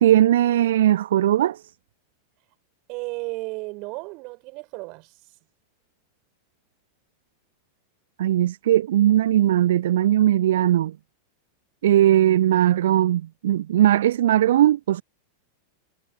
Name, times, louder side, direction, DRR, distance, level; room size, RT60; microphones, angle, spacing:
voice 1, 0.0-1.6 8.2-11.0 11.8-15.0, right 12 dB, 60° right, 0.4 m, -19 dB
voice 2, 2.9-5.1, right 27 dB, 40° right, 5.2 m, -33 dB
figure-of-eight pair, 90°, 0 cm